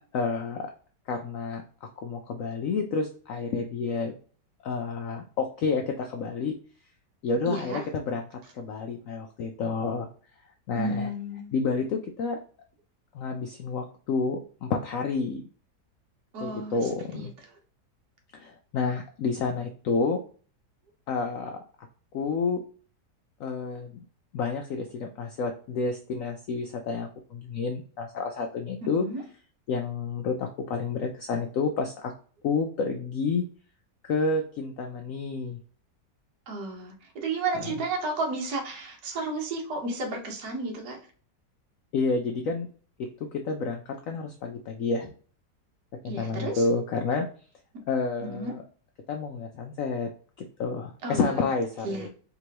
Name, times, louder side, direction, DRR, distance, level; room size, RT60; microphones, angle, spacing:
voice 1, 0.1-0.7 1.1-4.1 4.6-6.5 7.2-10.1 10.7-11.1 11.5-12.4 13.1-15.4 16.4-17.3 18.3-20.2 21.1-21.6 22.1-22.6 23.4-24.0 24.3-29.1 29.7-32.1 32.4-33.4 34.0-35.6 41.9-42.7 43.3-45.1 46.0-47.3 47.9-48.6 49.1-50.1 50.4-52.1, left 4 dB, 70° left, 0.8 m, -29 dB
voice 2, 7.5-7.8 10.7-11.5 16.3-16.8 17.1-17.3 28.9-29.2 36.5-41.0 46.0-46.6 48.2-48.5 51.0-51.3 51.8-52.1, right 2 dB, 65° right, 1.5 m, -32 dB
4.7 x 3.0 x 2.8 m
omnidirectional pair, 1.8 m